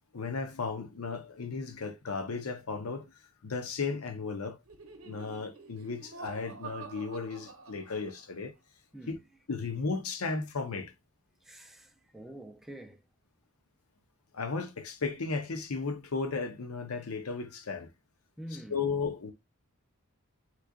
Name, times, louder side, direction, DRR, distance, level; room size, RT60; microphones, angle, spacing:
voice 1, 0.1-3.1 3.4-4.6 5.0-8.5 9.1-9.2 9.5-10.9 14.3-17.9 18.7-19.3, left 4 dB, 85° left, 0.7 m, -35 dB
Laughter, 4.7-8.4, right 5 dB, 70° right, 0.7 m, -48 dB
voice 2, 11.4-13.0 18.4-18.8, right 1 dB, ahead, 0.4 m, -46 dB
3.7 x 3.1 x 2.3 m
head